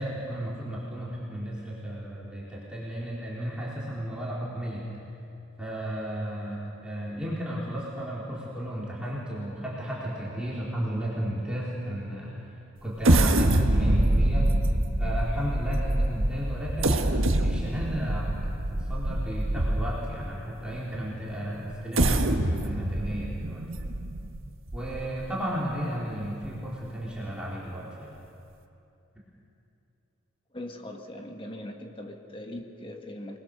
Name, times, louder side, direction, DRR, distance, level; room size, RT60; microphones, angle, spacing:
voice 1, 0.0-4.8 5.6-12.5 12.8-14.5 15.0-23.6 24.7-28.1, equal, 5° right, -7 dB, 4.0 m, -34 dB
sound 1, 13.0-20.2 20.7-20.8 21.7-25.3 25.7-25.8 26.2-26.5, right 1 dB, 85° right, 1.6 m, -25 dB
voice 2, 30.5-33.4, left 1 dB, 25° left, 3 dB, 1.6 m, -40 dB
29.5 x 21.0 x 6.8 m, 2.8 s
head